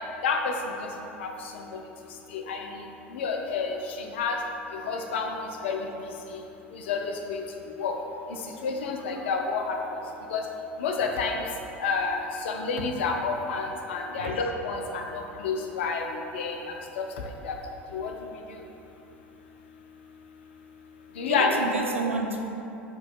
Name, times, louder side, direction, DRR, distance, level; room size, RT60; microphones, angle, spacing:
voice 1, 3.1-3.8 4.2-4.4 4.9-5.3 5.6-5.8 6.9-7.4 7.8-7.9 8.6-9.8 10.3-10.4 10.8-11.4 11.8-16.0 16.3-16.6 17.0-17.1 17.4-17.5 17.9-18.1 21.2-21.5, left 5 dB, 65° left, 3 dB, 0.4 m, -28 dB
voice 2, 14.0-14.5 18.0-18.1 21.3-22.4, right 3 dB, 85° right, 1 dB, 0.4 m, -32 dB
6.8 x 2.9 x 2.3 m, 2.9 s
figure-of-eight pair, 75°, 7 cm